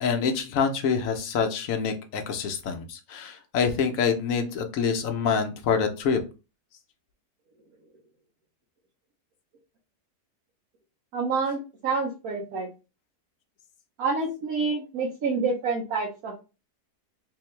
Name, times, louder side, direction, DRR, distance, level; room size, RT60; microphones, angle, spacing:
voice 1, 0.0-6.2, left 6 dB, 65° left, 5 dB, 1.0 m, -26 dB
voice 2, 11.1-12.7 14.0-16.4, right 4 dB, 70° right, -1 dB, 1.2 m, -28 dB
3.7 x 2.7 x 3.2 m, 0.30 s
omnidirectional pair, 1.7 m